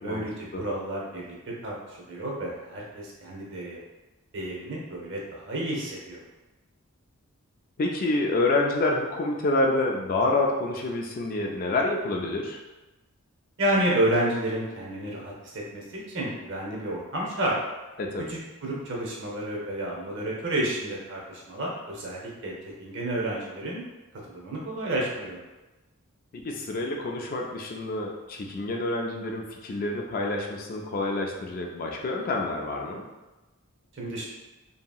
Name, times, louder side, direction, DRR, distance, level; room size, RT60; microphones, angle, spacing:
voice 1, 0.0-1.3 1.6-3.8 4.3-6.2 13.6-17.5 18.3-22.5 22.8-23.8 24.3-25.4 34.0-34.3, right 1 dB, 60° right, -3 dB, 0.7 m, -30 dB
voice 2, 7.8-12.6 18.0-18.3 26.3-33.0, left 2 dB, 40° left, 1 dB, 0.3 m, -28 dB
2.8 x 2.7 x 2.3 m, 1.1 s
head